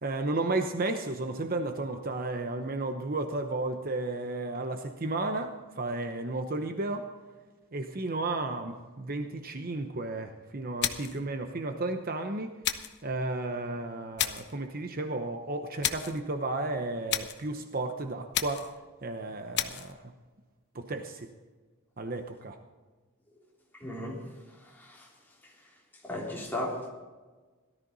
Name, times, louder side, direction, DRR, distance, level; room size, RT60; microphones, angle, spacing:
voice 1, 0.0-7.1 7.7-12.6 13.0-18.7 19.0-20.1 20.7-21.3 22.0-22.6, right 2 dB, 45° right, 6 dB, 0.9 m, -33 dB
sound 1, 10.8-11.2 12.6-13.0 14.2-14.6 15.8-16.2 17.1-17.5 18.3-18.8 19.5-19.9, left 10 dB, 50° left, 0.9 m, -32 dB
voice 2, 23.8-24.2 26.0-26.9, left 1 dB, 10° left, -4 dB, 3.6 m, -34 dB
17.5 x 13.0 x 4.1 m, 1.3 s
head